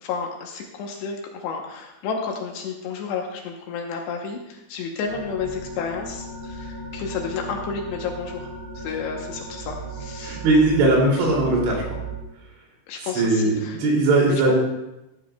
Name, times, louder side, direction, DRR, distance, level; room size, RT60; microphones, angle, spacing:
voice 1, 0.0-8.5 8.8-10.4 12.9-13.8 14.3-14.5, left 5 dB, 75° left, 2 dB, 2.8 m, -31 dB
sound 1, 5.1-12.2, right 3 dB, 20° right, 2.8 m, -36 dB
voice 2, 10.2-11.8 13.2-14.5, right 2 dB, 75° right, -2 dB, 5.0 m, -19 dB
15.0 x 12.5 x 2.3 m, 0.92 s
omnidirectional pair, 5.5 m